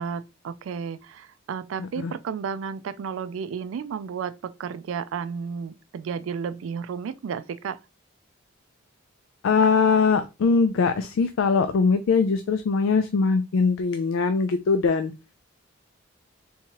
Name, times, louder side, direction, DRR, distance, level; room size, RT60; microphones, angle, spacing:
voice 1, 0.0-7.8, right 6 dB, 75° right, 0.3 m, -32 dB
voice 2, 9.4-15.1, left 4 dB, 75° left, 0.3 m, -21 dB
3.5 x 2.9 x 2.9 m
head